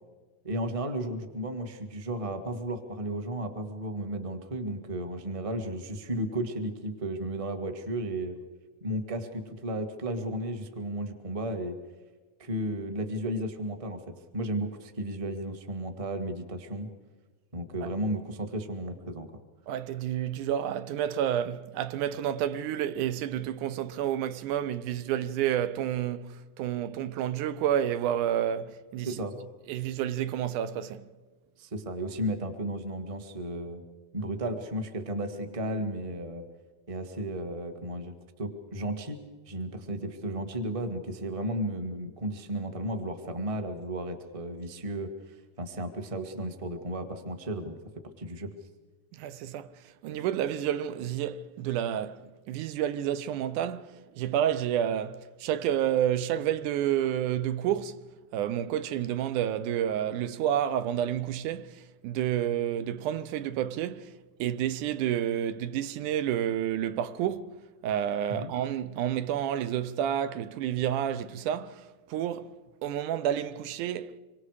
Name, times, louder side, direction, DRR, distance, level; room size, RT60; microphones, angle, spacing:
voice 1, 0.4-8.4 8.8-11.7 12.4-14.0 14.3-16.9 17.5-19.3 29.0-29.3 31.6-33.8 34.1-36.4 36.9-39.2 39.5-47.8 48.2-48.5 68.3-68.5, right 1 dB, 20° right, 0.9 m, -34 dB
voice 2, 19.7-29.1 29.7-31.1 49.1-49.7 50.0-53.9 54.2-58.0 58.3-64.1 64.4-72.5 72.8-74.2, right 10 dB, 85° right, 2.3 m, -30 dB
26.0 x 24.5 x 4.9 m
omnidirectional pair, 3.5 m